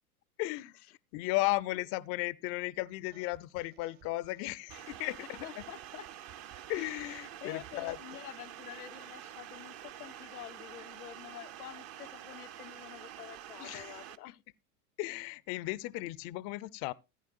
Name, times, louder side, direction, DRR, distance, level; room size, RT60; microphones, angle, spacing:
voice 1, 0.4-5.6 6.7-8.0 13.6-14.0 14.3-14.4 15.0-16.9, left 19 dB, 35° left, 0.4 m, -35 dB
sound 1, 3.1-8.2, right 12 dB, 50° right, 1.3 m, -60 dB
sound 2, 4.7-14.2, right 11 dB, 35° right, 0.6 m, -48 dB
voice 2, 5.4-6.1 7.4-14.4, left 14 dB, 85° left, 0.5 m, -48 dB
15.0 x 9.5 x 2.4 m
hypercardioid pair, 100°, 44 cm